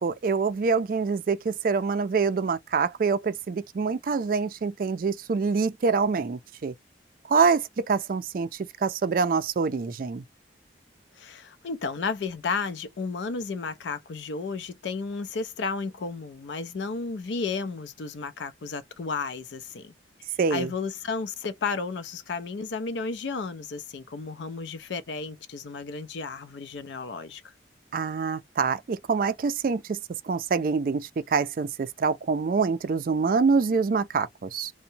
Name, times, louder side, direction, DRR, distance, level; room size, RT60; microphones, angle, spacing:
voice 1, 0.0-6.7 7.3-8.5 8.8-10.2 20.4-20.7 27.9-30.0 30.3-34.7, right 5 dB, 50° right, 0.3 m, -25 dB
voice 2, 11.2-19.9 20.5-27.4, left 4 dB, 85° left, 0.5 m, -33 dB
2.7 x 2.1 x 2.7 m
head